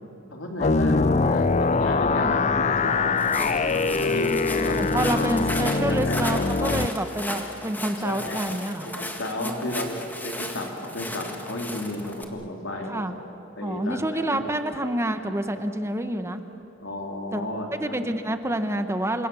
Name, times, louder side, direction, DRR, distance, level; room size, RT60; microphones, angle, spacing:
voice 1, 0.3-3.2 3.7-5.3 5.9-6.3 8.0-8.4 8.9-13.1 13.6-14.4 16.8-18.0, left 1 dB, 85° left, 2 dB, 3.6 m, -33 dB
sound 1, 0.6-6.9, left 4 dB, 35° left, 0.6 m, -23 dB
Walk footsteps, 3.2-12.2, left 1 dB, 10° left, 1.8 m, -35 dB
voice 2, 4.8-9.1 9.4-10.0 12.9-13.2 13.6-16.4 17.3-17.5 17.8-19.3, right 1 dB, 15° right, 8 dB, 1.1 m, -28 dB
28.5 x 25.5 x 7.1 m, 2.8 s
head